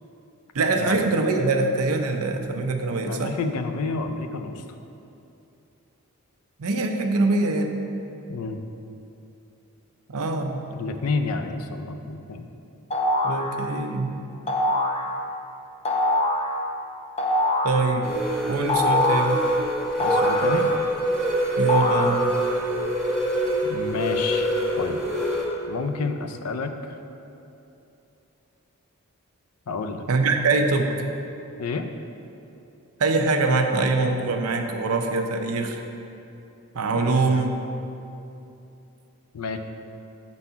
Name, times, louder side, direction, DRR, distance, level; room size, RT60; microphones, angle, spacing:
voice 1, 0.5-3.3 6.6-7.8 10.1-10.6 13.2-14.1 17.6-18.1 18.5-19.4 21.6-22.3 30.1-30.9 33.0-35.8 36.7-37.5, right 3 dB, 80° right, 4 dB, 0.6 m, -23 dB
voice 2, 3.1-4.6 8.3-8.6 10.7-12.5 20.0-20.7 23.7-24.5 24.8-25.0 25.7-26.9 29.7-30.1 31.6-31.9 37.0-37.4 39.3-39.6, left 4 dB, 90° left, 7 dB, 0.5 m, -29 dB
sound 1, 12.9-13.5 14.5-15.0 15.9-16.5 17.2-17.8 18.7-19.4 20.0-21.0 21.7-22.5, left 1 dB, 30° left, 0.6 m, -23 dB
sound 2, 18.0-25.4, right 1 dB, 5° left, 1.0 m, -25 dB
7.1 x 4.1 x 5.6 m, 2.8 s
head